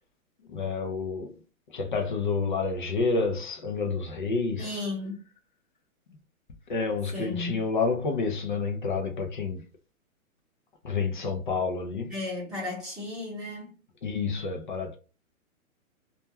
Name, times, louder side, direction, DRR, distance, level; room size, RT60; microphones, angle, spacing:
voice 1, 0.5-1.3 1.7-4.8 6.7-9.6 10.8-12.1 14.0-15.0, left 4 dB, 40° left, 0.4 m, -29 dB
voice 2, 4.6-5.2 7.1-7.6 12.1-13.7, left 2 dB, ahead, 0.7 m, -34 dB
2.3 x 2.1 x 2.8 m
hypercardioid pair, 145°, 42 cm